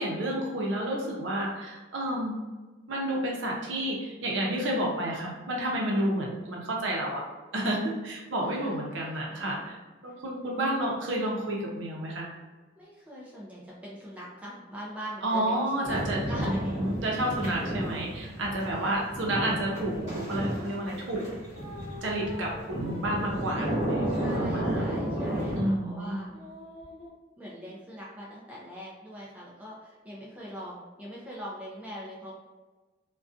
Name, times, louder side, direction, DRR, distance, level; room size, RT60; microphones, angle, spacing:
voice 1, 0.0-2.3 2.9-7.2 7.5-9.8 10.0-12.3 15.2-21.2 22.0-24.0 24.3-24.9 25.6-26.2, right 1 dB, 70° right, -2 dB, 0.6 m, -30 dB
voice 2, 8.4-9.7 10.1-10.2 12.8-16.8 18.6-19.2 24.1-26.3 27.4-32.3, equal, 5° right, -5 dB, 0.4 m, -42 dB
sound 1, 15.8-25.6, right 1 dB, 35° right, 1.0 m, -32 dB
sound 2, 19.9-21.0 21.5-25.8 26.3-27.1, left 2 dB, 70° left, 0.7 m, -46 dB
2.5 x 2.2 x 2.4 m, 1.2 s
head